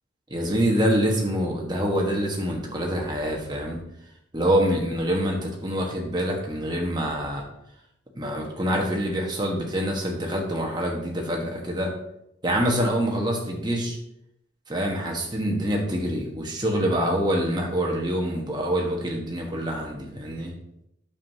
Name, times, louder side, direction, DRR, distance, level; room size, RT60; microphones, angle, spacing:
voice 1, 0.3-3.8 4.3-7.4 8.1-11.9 12.4-14.0 14.7-20.5, equal, 20° right, 0 dB, 1.3 m, -25 dB
8.8 x 7.2 x 2.8 m, 0.80 s
head